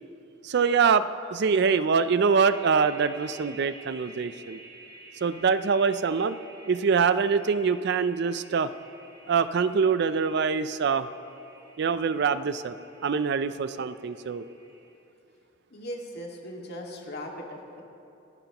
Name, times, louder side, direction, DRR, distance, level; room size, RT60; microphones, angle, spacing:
voice 1, 0.4-4.6 5.2-6.4 6.7-8.7 9.3-11.1 11.8-12.8 13.0-14.5, right 5 dB, 55° right, 13 dB, 0.4 m, -24 dB
sound 1, 2.4-14.9, right 2 dB, 20° right, 1.8 m, -51 dB
voice 2, 15.7-17.8, equal, 55° left, 0 dB, 2.0 m, -38 dB
28.5 x 11.0 x 3.0 m, 2.8 s
head